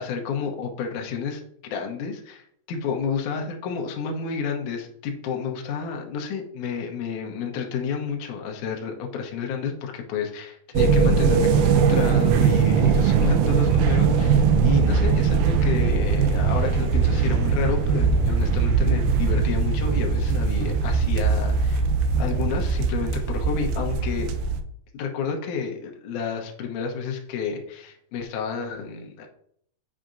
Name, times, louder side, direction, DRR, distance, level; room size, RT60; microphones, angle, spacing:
voice 1, 0.0-21.9 22.2-24.3 24.9-29.3, left 6 dB, 80° left, 1 dB, 1.8 m, -30 dB
sound 1, 10.8-24.6, right 5 dB, 90° right, 2.0 m, -21 dB
7.4 x 5.8 x 2.6 m, 0.67 s
omnidirectional pair, 4.9 m